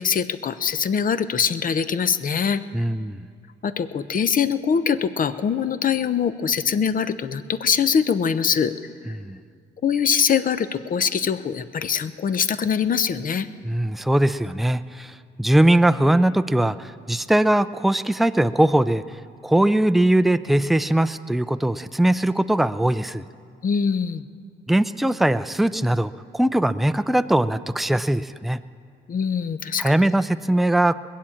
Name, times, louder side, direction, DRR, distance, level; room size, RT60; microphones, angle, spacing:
voice 1, 0.0-2.6 3.6-8.7 9.8-13.5 23.6-24.2 29.1-29.9, left 7 dB, 45° left, 13 dB, 0.7 m, -23 dB
voice 2, 2.7-3.2 9.1-9.4 13.6-19.2 19.4-23.3 24.7-28.6 29.8-30.9, right 1 dB, ahead, 12 dB, 0.4 m, -20 dB
20.5 x 7.4 x 8.6 m, 2.2 s
cardioid pair, 90°, 20 cm